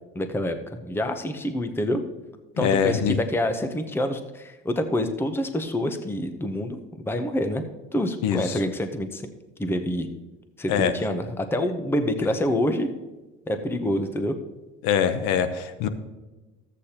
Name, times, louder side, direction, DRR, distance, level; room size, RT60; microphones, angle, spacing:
voice 1, 0.1-2.0 2.6-7.6 7.9-9.2 9.6-10.1 10.6-12.9 13.5-14.4, left 1 dB, 10° left, 8 dB, 0.7 m, -27 dB
voice 2, 2.6-3.2 8.2-8.6 10.7-10.9 14.8-15.9, left 8 dB, 85° left, 11 dB, 0.8 m, -23 dB
13.5 x 8.3 x 2.9 m, 1.2 s
cardioid pair, 105°, 29 cm